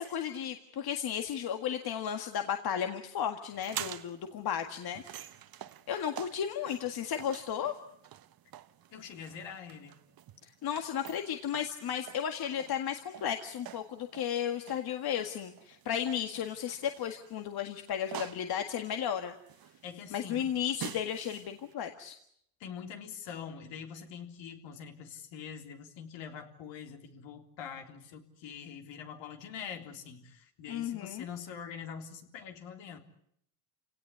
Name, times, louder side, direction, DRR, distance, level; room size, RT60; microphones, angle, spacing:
voice 1, 0.0-5.0 5.9-7.7 10.6-19.3 20.1-22.2 30.7-31.3, left 9 dB, 50° left, 6 dB, 1.9 m, -34 dB
sound 1, 3.5-21.7, right 11 dB, 50° right, 1.3 m, -47 dB
voice 2, 8.9-10.0 19.8-20.5 22.6-33.0, left 7 dB, 70° left, 4 dB, 3.7 m, -44 dB
28.5 x 18.0 x 9.8 m, 0.73 s
cardioid pair, 105°, 46 cm